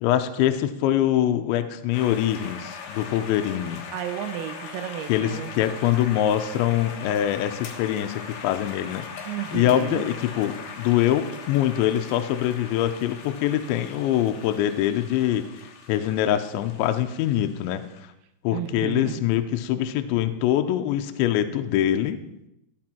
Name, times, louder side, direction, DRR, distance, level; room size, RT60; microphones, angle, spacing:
voice 1, 0.0-3.8 5.1-17.8 18.4-22.2, left 11 dB, 85° left, 7 dB, 2.7 m, -24 dB
sound 1, 1.9-18.0, left 5 dB, 70° left, 2.1 m, -40 dB
voice 2, 3.9-5.5 9.3-10.0 18.5-19.2, right 11 dB, 85° right, 8 dB, 3.6 m, -32 dB
15.0 x 9.7 x 4.4 m, 0.85 s
omnidirectional pair, 5.9 m